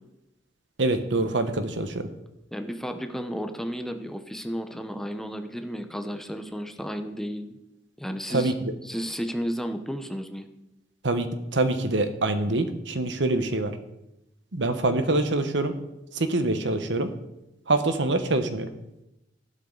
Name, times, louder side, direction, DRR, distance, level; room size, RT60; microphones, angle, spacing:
voice 1, 0.8-2.1 8.3-8.5 11.0-11.3 11.5-13.7 14.5-15.7 16.2-17.1 17.7-18.7, right 2 dB, 75° right, 9 dB, 1.1 m, -25 dB
voice 2, 2.5-7.6 8.0-8.5 8.8-10.5, equal, ahead, 7 dB, 0.8 m, -33 dB
13.0 x 12.0 x 4.0 m, 0.92 s
head